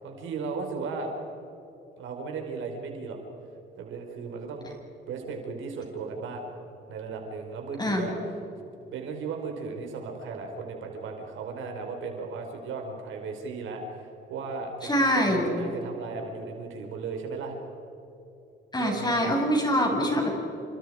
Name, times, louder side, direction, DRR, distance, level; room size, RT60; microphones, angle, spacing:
voice 1, 0.0-1.1 2.0-3.2 3.8-4.6 5.1-6.5 6.9-8.1 8.9-17.5 18.8-19.3, right 4 dB, 80° right, 2 dB, 4.8 m, -36 dB
voice 2, 14.8-15.5 18.7-20.3, equal, 20° left, 1 dB, 6.6 m, -24 dB
29.5 x 26.5 x 5.1 m, 2.9 s
cardioid pair, 90°, 20 cm